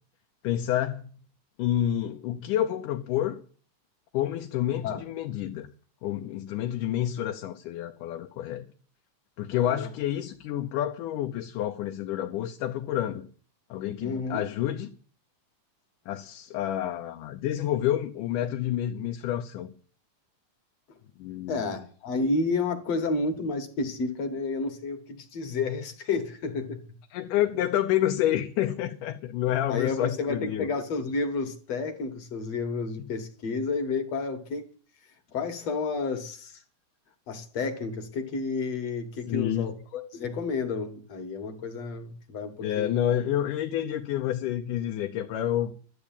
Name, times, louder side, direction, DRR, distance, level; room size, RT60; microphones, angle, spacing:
voice 1, 0.4-1.0 1.6-3.4 4.1-5.7 6.0-8.7 9.4-13.3 13.7-14.9 16.1-19.7 21.2-21.8 27.1-30.7 39.3-39.7 42.6-45.7, left 12 dB, 85° left, 2.4 m, -29 dB
voice 2, 9.5-9.9 14.0-14.5 21.5-26.8 29.7-34.7 35.3-36.6 37.3-43.1, left 4 dB, 55° left, 2.6 m, -31 dB
12.5 x 8.5 x 8.9 m
omnidirectional pair, 3.6 m